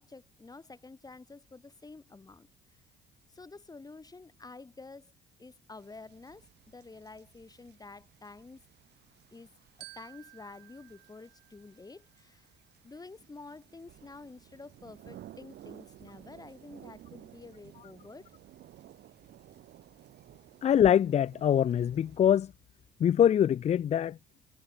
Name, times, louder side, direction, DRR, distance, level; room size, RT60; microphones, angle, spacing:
voice 1, 0.0-2.5 3.3-5.1 5.4-8.6 9.3-9.5 9.8-12.5 12.8-18.3, left 3 dB, 20° left, 2.0 m, -49 dB
sound 1, 5.8-22.2, right 12 dB, 65° right, 5.1 m, -55 dB
Glockenspiel, 9.8-12.3, right 31 dB, 85° right, 2.4 m, -54 dB
voice 2, 20.6-22.5 23.0-24.2, left 9 dB, 35° left, 0.4 m, -24 dB
supercardioid pair, 70°, 19 cm